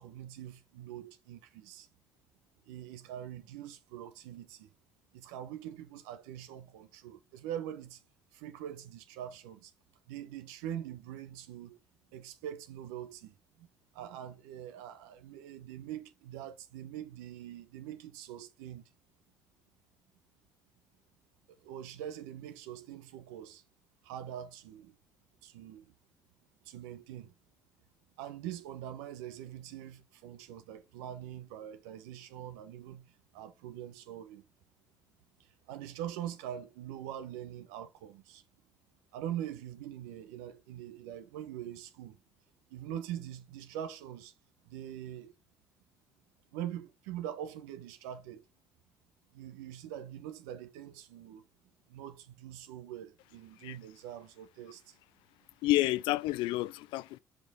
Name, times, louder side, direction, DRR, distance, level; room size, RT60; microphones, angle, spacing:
voice 1, 0.0-1.9 2.6-4.7 5.1-8.0 8.3-9.7 10.1-11.8 12.1-13.7 13.9-18.9 21.6-23.6 24.0-25.0 25.4-25.9 26.6-27.3 28.2-34.4 35.4-38.4 39.1-42.2 42.7-44.3 44.6-45.3 46.5-48.4 49.3-51.4 51.9-55.0, right 11 dB, 85° right, 1.0 m, -43 dB
voice 2, 55.6-57.2, left 17 dB, 75° left, 0.3 m, -29 dB
6.1 x 5.4 x 3.6 m
hypercardioid pair, 60°, 8 cm